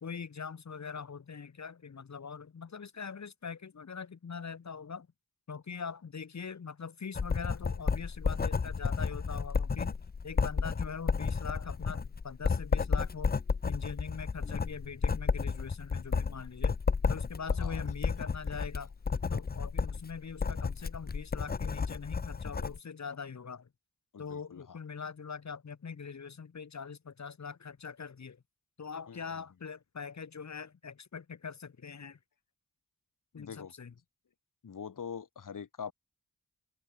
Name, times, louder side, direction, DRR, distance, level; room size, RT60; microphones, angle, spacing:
voice 1, 0.0-5.1 5.5-9.9 10.2-13.3 13.6-16.7 17.1-18.9 19.3-23.7 24.2-28.4 28.8-32.2 33.3-33.9, left 6 dB, 60° left, 1.4 m, -42 dB
Writing, 7.1-22.8, left 5 dB, 30° left, 0.6 m, -32 dB
voice 2, 24.1-24.8 29.1-29.2 33.4-33.7 34.6-35.9, left 7 dB, 75° left, 1.9 m, -43 dB
open air
cardioid pair, 55°, 32 cm